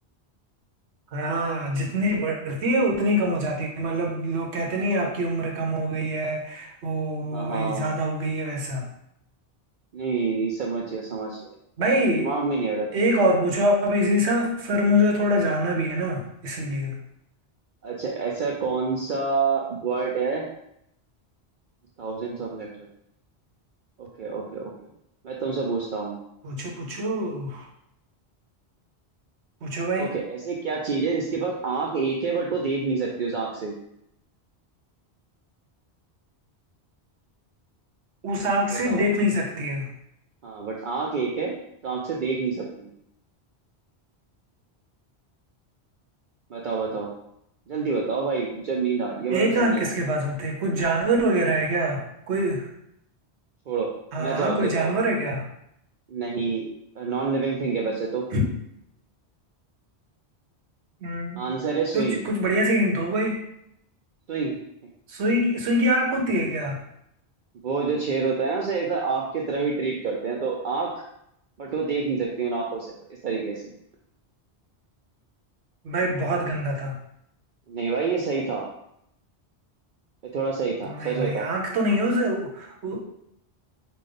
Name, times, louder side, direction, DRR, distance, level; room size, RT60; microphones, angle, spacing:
voice 1, 1.1-8.8 11.8-12.4 12.9-17.0 26.4-27.7 29.6-30.1 38.2-39.9 49.3-52.7 54.1-55.4 58.3-58.4 61.0-61.4 61.9-63.4 65.1-66.8 75.8-77.0 80.8-83.1, equal, 80° right, 1 dB, 1.1 m, -24 dB
voice 2, 7.3-7.9 9.9-11.4 12.2-13.0 17.8-20.4 22.0-22.9 24.0-24.7 25.2-26.2 27.2-27.3 30.0-33.8 38.7-39.0 40.4-41.5 41.8-42.9 46.5-47.1 47.7-49.9 53.7-54.9 56.1-56.7 57.0-58.2 61.4-62.2 64.3-64.6 67.6-71.0 71.6-72.9 73.2-73.7 77.7-78.7 80.2-81.5, right 4 dB, 55° right, -2 dB, 0.7 m, -27 dB
5.2 x 2.5 x 3.7 m, 0.76 s
omnidirectional pair, 1.1 m